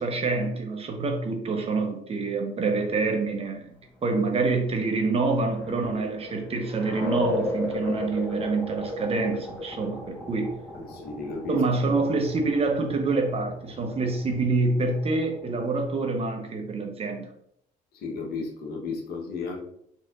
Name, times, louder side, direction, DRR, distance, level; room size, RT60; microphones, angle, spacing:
voice 1, 0.0-3.7 4.0-10.6 11.5-17.3, right 3 dB, 35° right, 3 dB, 0.9 m, -26 dB
sound 1, 4.4-15.8, left 2 dB, 10° left, 1.0 m, -36 dB
voice 2, 10.7-11.6 17.9-19.6, left 4 dB, 70° left, 1 dB, 1.0 m, -34 dB
4.1 x 3.9 x 2.4 m, 0.70 s
cardioid pair, 110°, 17 cm